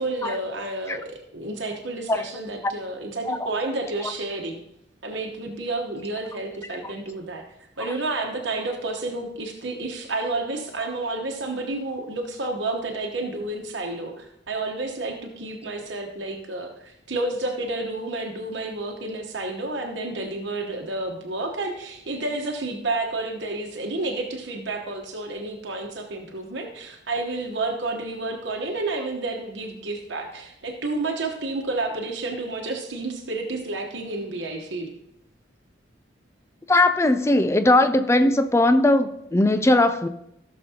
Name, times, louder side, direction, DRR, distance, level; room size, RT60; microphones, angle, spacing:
voice 1, 0.0-4.6 5.0-7.4 7.8-34.9, right 2 dB, 70° right, 1 dB, 1.1 m, -30 dB
voice 2, 36.7-40.1, left 1 dB, 15° left, 10 dB, 0.4 m, -19 dB
15.5 x 6.7 x 2.9 m, 0.80 s
head